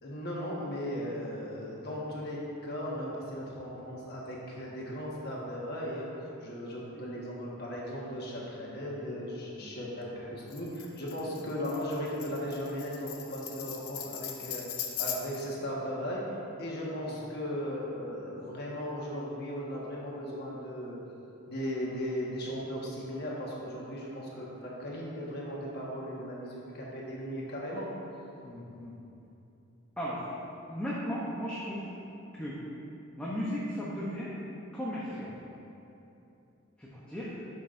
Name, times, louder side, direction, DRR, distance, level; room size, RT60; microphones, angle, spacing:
voice 1, 0.0-6.1 6.4-21.0 21.5-27.9, equal, 50° left, -5 dB, 1.4 m, -37 dB
Tambourine, 10.5-15.5, left 9 dB, 85° left, 0.7 m, -39 dB
voice 2, 28.4-28.9 30.0-30.3 30.7-31.9 32.4-32.6 33.2-34.3 34.7-35.4 36.8-37.4, equal, 5° left, -8 dB, 0.7 m, -36 dB
11.5 x 5.6 x 2.6 m, 2.8 s
head